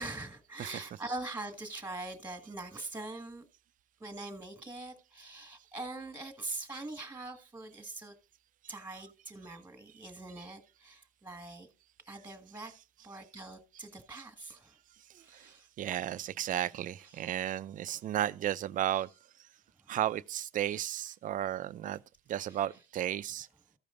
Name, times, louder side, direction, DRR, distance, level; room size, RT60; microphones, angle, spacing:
voice 1, 0.0-3.5 4.0-8.1 8.7-11.7 12.1-12.7 13.0-14.8 15.2-15.7 17.0-17.4 18.9-19.0 19.8-19.9 20.7-20.8 22.5-22.6, right 2 dB, 10° right, 1.8 m, -43 dB
voice 2, 0.6-1.2 15.8-19.1 19.9-22.0 22.3-23.5, right 12 dB, 50° right, 0.5 m, -34 dB
14.5 x 5.2 x 3.8 m
cardioid pair, 110°, 17 cm